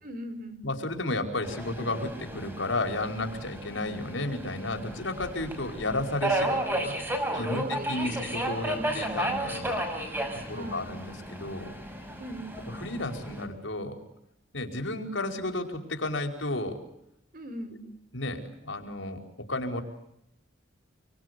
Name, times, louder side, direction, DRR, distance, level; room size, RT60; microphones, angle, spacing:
voice 1, 0.0-0.7 7.6-8.3 8.7-8.9 10.5-10.9 12.2-12.7 17.3-17.8, equal, 50° right, 11 dB, 4.7 m, -40 dB
voice 2, 0.6-6.9 7.3-9.8 10.5-11.7 12.7-14.0 14.5-16.8 18.1-19.8, left 2 dB, 75° left, 4 dB, 5.1 m, -32 dB
Subway metro underground, 1.4-13.4, right 1 dB, 10° right, 6.0 m, -33 dB
29.0 x 24.0 x 8.4 m, 0.79 s
head